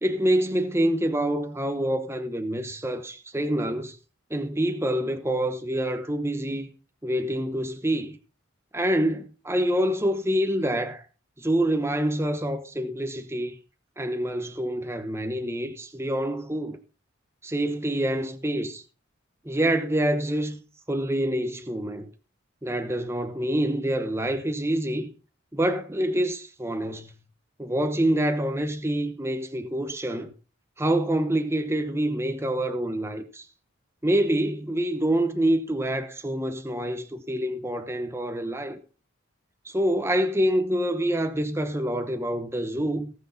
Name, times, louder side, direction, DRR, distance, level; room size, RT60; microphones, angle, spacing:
voice 1, 0.0-4.0 4.3-6.7 7.0-8.2 8.7-11.0 11.4-13.6 14.0-16.8 17.4-18.8 19.4-20.6 20.9-22.1 22.6-25.1 25.5-27.1 27.6-30.3 30.8-33.5 34.0-38.8 39.6-43.1, right 1 dB, 10° right, 0.9 m, -26 dB
18.5 x 6.6 x 4.1 m
head